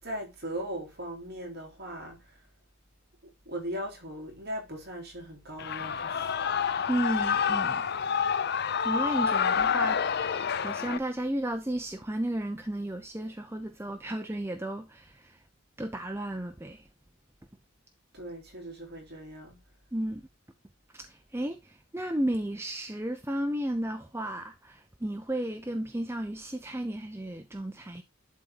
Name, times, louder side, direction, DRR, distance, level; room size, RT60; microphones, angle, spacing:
voice 1, 0.0-2.4 3.5-6.6 18.1-19.6, equal, 50° right, 3.9 m, -39 dB
Shout / Cheering, 5.6-11.0, left 7 dB, 50° left, 0.5 m, -28 dB
voice 2, 6.9-7.8 8.8-15.4 15.8-16.8 19.9-20.2 20.9-28.0, right 1 dB, 10° right, 0.6 m, -33 dB
11.0 x 4.2 x 3.8 m
head